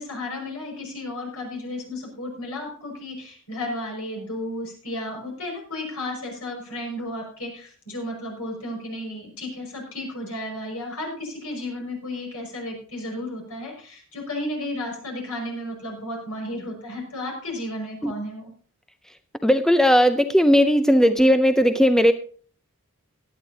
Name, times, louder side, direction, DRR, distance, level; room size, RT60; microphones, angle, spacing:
voice 1, 0.0-18.5, left 1 dB, 80° left, 1 dB, 5.7 m, -33 dB
voice 2, 19.4-22.1, equal, ahead, 9 dB, 0.5 m, -17 dB
17.5 x 11.0 x 2.8 m, 0.43 s
head